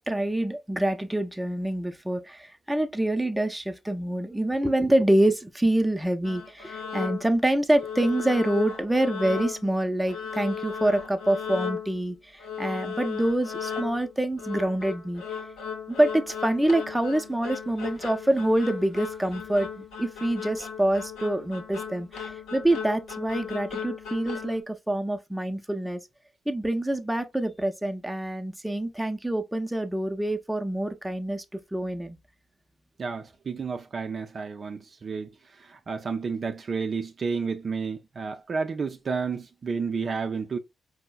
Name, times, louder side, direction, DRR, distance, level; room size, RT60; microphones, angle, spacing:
voice 1, 0.0-15.2 15.9-26.0 26.5-32.2, right 1 dB, 10° right, 0.6 m, -26 dB
sound 1, 6.2-7.4 7.8-9.8 10.1-12.1 12.4-24.6, left 7 dB, 80° left, 0.8 m, -36 dB
voice 2, 33.0-35.3 35.6-40.6, right 5 dB, 50° right, 0.4 m, -31 dB
4.4 x 2.1 x 2.3 m
hypercardioid pair, 45°, 0 cm